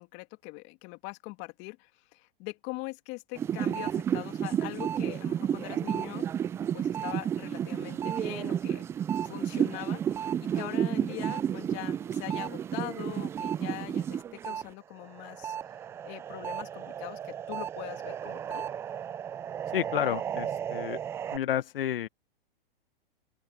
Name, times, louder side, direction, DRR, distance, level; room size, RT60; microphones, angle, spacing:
voice 1, 0.0-6.4 6.7-8.8 9.2-10.3 10.5-15.6 16.0-18.7, left 26 dB, 40° left, 2.6 m, -42 dB
sound 1, 3.4-14.6 15.0-21.4, right 9 dB, 10° right, 0.3 m, -32 dB
voice 2, 19.7-21.0 21.3-22.1, left 11 dB, 70° left, 1.1 m, -31 dB
open air
hypercardioid pair, 125°, 29 cm